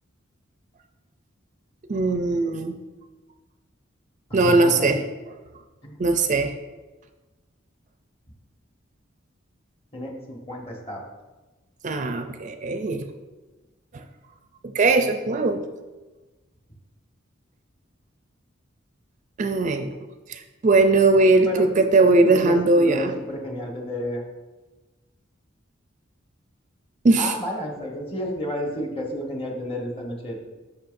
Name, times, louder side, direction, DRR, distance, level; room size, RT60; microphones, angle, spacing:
voice 1, 1.9-2.8 4.3-5.0 6.0-6.5 11.8-13.1 14.7-15.6 19.4-19.9 20.3-23.1 27.0-27.3, right 3 dB, 40° right, 7 dB, 0.4 m, -19 dB
voice 2, 4.3-4.9 5.8-6.0 9.9-11.1 21.4-21.7 22.0-24.2 27.2-30.5, equal, 30° left, 0 dB, 1.2 m, -31 dB
10.0 x 5.7 x 2.6 m, 1.2 s
head